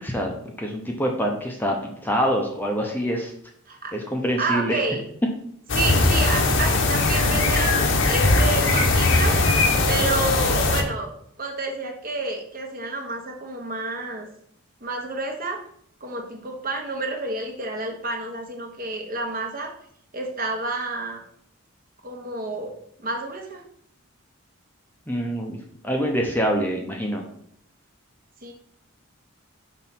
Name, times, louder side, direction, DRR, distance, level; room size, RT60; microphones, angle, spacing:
voice 1, 0.0-3.3 3.9-4.8 25.1-25.6 25.8-27.2, equal, 10° left, 1 dB, 0.7 m, -25 dB
voice 2, 4.4-5.0 5.7-9.4 9.9-11.1 11.4-14.3 14.8-15.6 16.0-19.7 20.1-21.2 22.0-22.7 23.0-23.6 28.4-28.5, right 3 dB, 40° right, 2 dB, 1.2 m, -29 dB
sound 1, 5.7-10.8, left 3 dB, 60° left, 1.0 m, -20 dB
6.0 x 4.1 x 5.8 m, 0.66 s
head